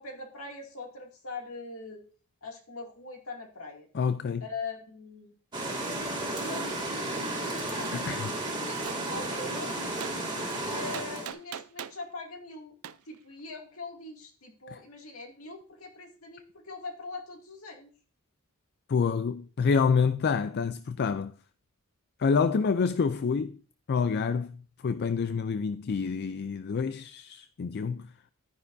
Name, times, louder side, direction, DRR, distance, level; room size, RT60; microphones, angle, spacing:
voice 1, 0.0-2.0 2.4-3.9 4.4-5.3 6.4-9.9 10.6-12.7 13.1-17.9, left 3 dB, 70° left, 2.3 m, -42 dB
voice 2, 3.9-4.4 7.9-8.3 18.9-21.3 22.2-23.6 23.9-24.6 24.8-28.1, left 5 dB, 45° left, 0.4 m, -27 dB
sound 1, 5.5-11.3, right 2 dB, 20° right, 2.3 m, -33 dB
Gunshot gunfire, 8.8-9.0 10.0-10.2 10.9-12.0 12.8-13.0, right 9 dB, 70° right, 0.5 m, -39 dB
12.0 x 9.8 x 2.6 m
head